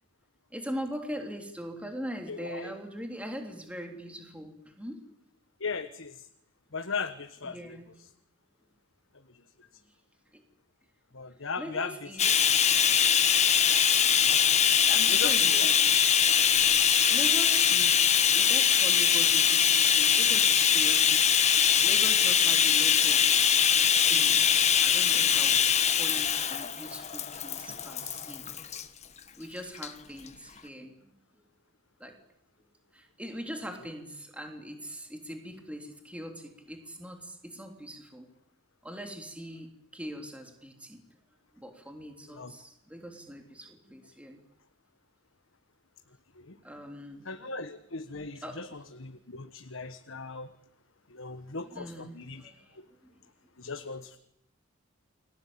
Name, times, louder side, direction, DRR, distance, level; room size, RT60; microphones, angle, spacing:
voice 1, 0.5-5.1 7.4-8.0 10.3-10.4 11.6-12.7 14.9-15.9 17.1-21.4 21.8-23.5 24.1-25.6 25.9-28.4 29.4-31.5 32.0-32.2 32.9-38.3 38.8-39.7 39.9-41.0 41.5-44.4 46.5-47.4 48.4-48.6 48.9-49.1 51.6-53.2, equal, 5° right, 3 dB, 3.2 m, -42 dB
voice 2, 2.3-2.7 5.6-6.3 6.7-7.8 11.1-11.9 14.2-14.4 15.1-15.7 42.3-42.5 46.4-46.6 47.2-48.7 49.0-50.5 51.1-52.9 53.6-54.2, left 4 dB, 75° left, 8 dB, 1.4 m, -38 dB
Bathtub (filling or washing), 12.2-28.8 29.7-29.9 30.3-30.4, left 8 dB, 30° left, 1.4 m, -23 dB
29.5 x 22.5 x 8.7 m, 0.77 s
head